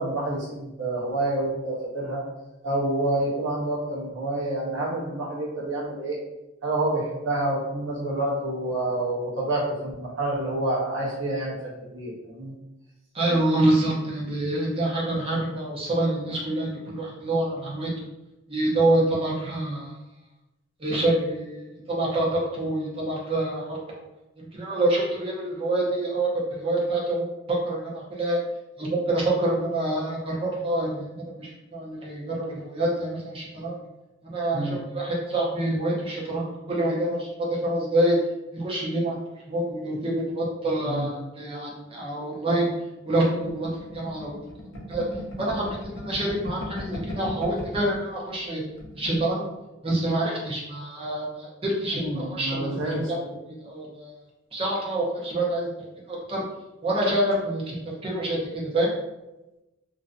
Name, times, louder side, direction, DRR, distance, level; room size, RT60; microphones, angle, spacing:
voice 1, 0.0-2.2 2.6-6.2 6.6-11.5 11.9-12.5 34.5-34.8 40.8-41.1 51.9-53.1, right 1 dB, 65° right, -5 dB, 0.8 m, -28 dB
voice 2, 13.1-17.9 18.5-19.9 20.8-24.0 24.4-27.3 27.6-28.4 28.8-31.1 31.4-33.8 34.2-37.3 37.6-38.2 38.5-39.2 39.5-42.7 43.0-44.5 44.9-45.0 45.4-48.6 48.9-49.5 49.8-52.7 53.1-54.1 54.5-55.7 56.1-56.4 56.8-57.7 58.0-58.9, right 1 dB, 25° right, -4 dB, 0.5 m, -26 dB
sound 1, 43.5-48.0 48.3-48.5 48.7-49.3, left 1 dB, 65° left, 0.5 m, -36 dB
2.5 x 2.1 x 2.4 m, 1.0 s
head